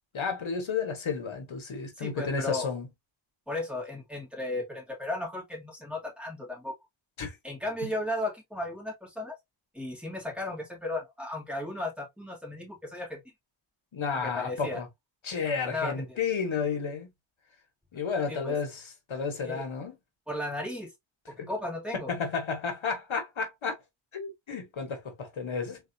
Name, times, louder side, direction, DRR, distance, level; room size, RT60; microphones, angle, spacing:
voice 1, 0.1-2.9 7.2-7.3 13.9-14.9 15.2-17.1 17.9-19.9 21.4-21.5 22.1-23.8 24.1-25.8, left 5 dB, 75° left, 1.1 m, -32 dB
voice 2, 2.0-2.7 3.5-6.7 7.4-9.4 9.7-13.2 14.1-14.8 15.6-16.2 18.3-18.6 19.4-19.6 20.3-20.9 21.3-22.1, left 1 dB, ahead, 1.9 m, -35 dB
3.9 x 2.6 x 2.5 m
wide cardioid pair, 75°, 47 cm